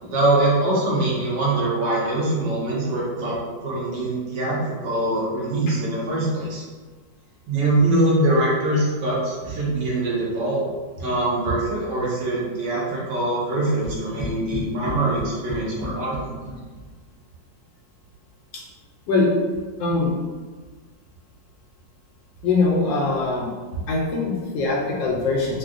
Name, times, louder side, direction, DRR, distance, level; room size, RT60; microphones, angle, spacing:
voice 1, 0.0-3.4 3.6-6.6 7.5-10.6 11.0-16.3, right 2 dB, 70° right, -6 dB, 1.3 m, -23 dB
sound 1, 13.8-17.1, equal, 40° right, 0.6 m, -33 dB
voice 2, 19.8-20.1 22.4-23.5 23.7-25.6, left 3 dB, 75° left, -2 dB, 1.3 m, -22 dB
3.6 x 2.1 x 2.5 m, 1.4 s
omnidirectional pair, 2.1 m